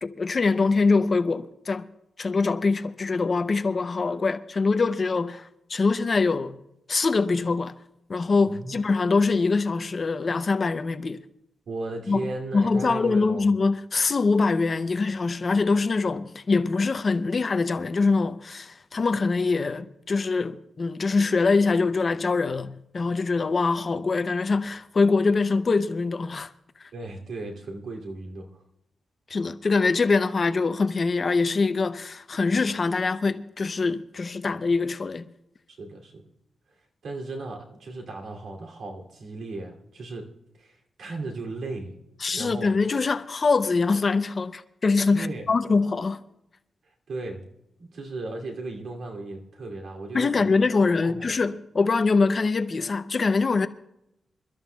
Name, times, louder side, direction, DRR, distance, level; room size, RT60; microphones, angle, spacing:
voice 1, 0.0-1.9 2.2-6.6 6.9-7.7 8.1-11.2 12.1-12.2 12.5-26.5 29.3-35.3 42.2-46.2 50.1-53.7, left 4 dB, 35° left, 0.5 m, -24 dB
voice 2, 8.5-8.8 11.7-13.5 26.9-28.6 35.7-36.2 37.0-40.3 40.6-42.0 42.3-42.7 45.1-45.5 46.8-47.4 47.8-50.6 51.0-51.3, right 2 dB, 70° right, 2.6 m, -36 dB
27.5 x 13.0 x 2.3 m
wide cardioid pair, 160°, 0 cm